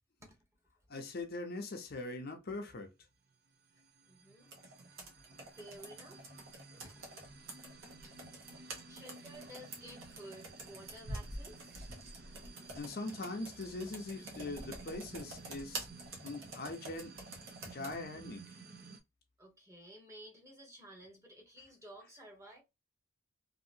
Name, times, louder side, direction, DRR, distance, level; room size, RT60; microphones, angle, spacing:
voice 1, 0.9-2.9 12.7-15.9 16.2-17.1 17.6-18.4, left 2 dB, 45° left, 0.6 m, -41 dB
sound 1, 3.3-19.0, right 4 dB, 50° right, 0.6 m, -54 dB
voice 2, 4.1-4.6 4.9-5.0 5.5-6.3 6.8-7.0 8.9-11.7 19.4-22.6, equal, 15° right, 1.0 m, -53 dB
Computer keyboard, 4.5-18.0, right 2 dB, 75° right, 1.1 m, -48 dB
2.8 x 2.6 x 2.6 m
head